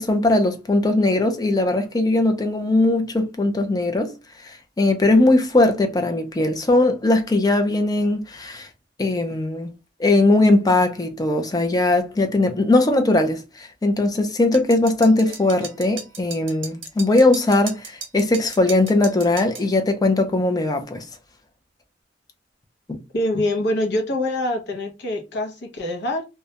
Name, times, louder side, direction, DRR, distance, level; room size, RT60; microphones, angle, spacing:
voice 1, 0.0-4.1 4.5-8.7 9.0-9.7 10.0-21.0 22.9-23.0, left 2 dB, 20° left, 0.4 m, -19 dB
sound 1, 14.5-19.7, right 6 dB, 90° right, 0.6 m, -36 dB
voice 2, 23.1-26.2, left 1 dB, 65° left, 0.6 m, -24 dB
2.2 x 2.0 x 2.7 m
head